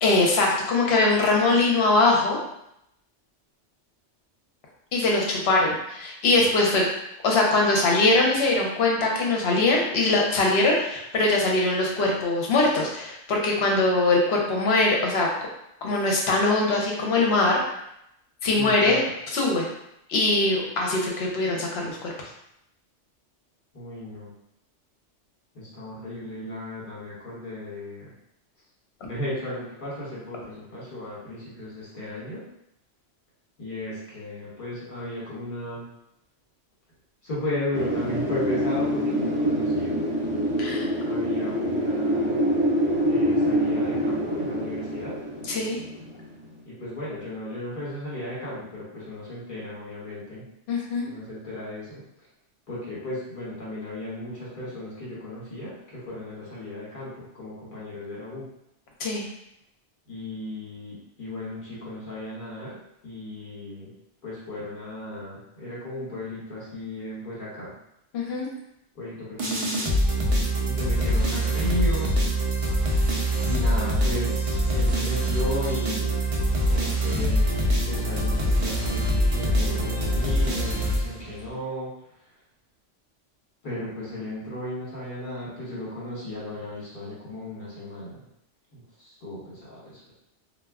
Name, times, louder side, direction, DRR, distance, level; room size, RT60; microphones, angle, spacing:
voice 1, 0.0-2.4 4.9-6.8 7.2-15.3 15.8-17.6 18.4-19.0 19.3-19.7 20.1-22.1 40.6-40.9 45.5-45.8 50.7-51.1 59.0-59.2 68.1-68.5, left 2 dB, 65° left, -1 dB, 0.9 m, -22 dB
voice 2, 18.6-19.0 23.7-24.3 25.5-28.1 29.0-32.4 33.6-35.8 37.2-40.0 41.0-42.6 43.0-45.2 46.6-50.5 51.0-52.0 52.7-58.5 60.1-62.8 63.0-63.9 64.2-67.7 68.9-69.9 70.6-72.5 73.4-76.1 76.6-82.2 83.6-88.2 88.7-90.2, left 1 dB, 45° left, -7 dB, 1.2 m, -35 dB
Wind, 37.7-46.4, equal, 40° right, 0.8 m, -25 dB
sound 1, 69.4-81.5, equal, 60° right, 0.3 m, -24 dB
2.2 x 2.1 x 3.4 m, 0.80 s
omnidirectional pair, 1.2 m